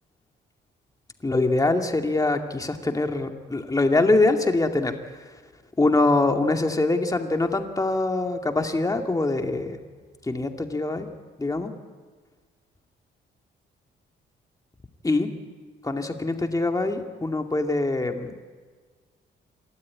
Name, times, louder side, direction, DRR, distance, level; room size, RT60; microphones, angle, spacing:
voice 1, 1.2-4.9 5.8-9.8 10.3-11.1 11.4-11.7 15.0-15.3 15.8-18.3, left 2 dB, 15° left, 4 dB, 2.4 m, -23 dB
28.0 x 13.0 x 9.7 m, 1.5 s
cardioid pair, 90°, 20 cm